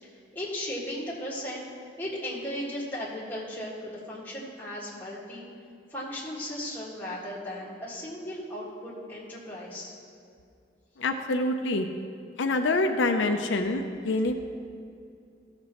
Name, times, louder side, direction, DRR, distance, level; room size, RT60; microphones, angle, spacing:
voice 1, 0.0-1.7 2.0-5.5 5.9-9.9, left 1 dB, 10° left, -7 dB, 1.7 m, -36 dB
voice 2, 11.0-11.9 12.4-14.3, left 2 dB, 85° left, 5 dB, 0.5 m, -26 dB
14.5 x 6.6 x 3.0 m, 2.4 s
head